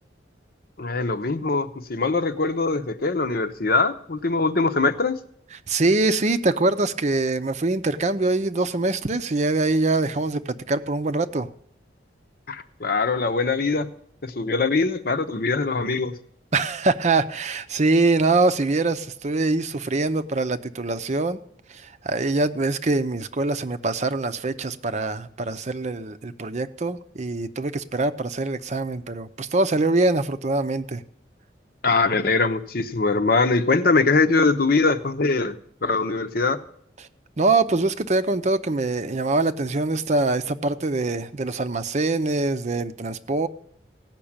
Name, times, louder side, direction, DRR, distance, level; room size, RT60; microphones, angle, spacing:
voice 1, 0.8-5.2 12.5-13.9 14.2-16.2 31.8-36.6, left 3 dB, 55° left, 0.8 m, -22 dB
voice 2, 5.7-11.5 16.5-21.4 22.0-31.0 37.4-43.5, right 3 dB, 40° right, 0.6 m, -23 dB
16.5 x 6.0 x 8.8 m
head